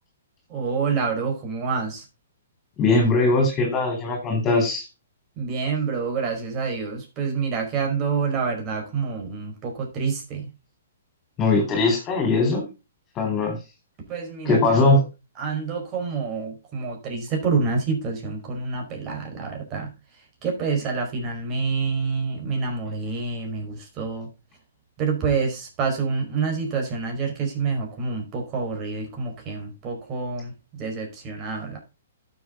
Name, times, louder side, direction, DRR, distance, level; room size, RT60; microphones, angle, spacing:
voice 1, 0.5-2.0 5.3-10.5 14.1-15.0 15.4-24.3 25.0-31.8, right 5 dB, 30° right, 1 dB, 5.0 m, -27 dB
voice 2, 2.8-4.9 11.4-12.7 13.2-13.6 14.5-15.0, left 3 dB, 25° left, 3 dB, 4.0 m, -20 dB
12.5 x 7.4 x 3.8 m, 0.27 s
hypercardioid pair, 130°, 0 cm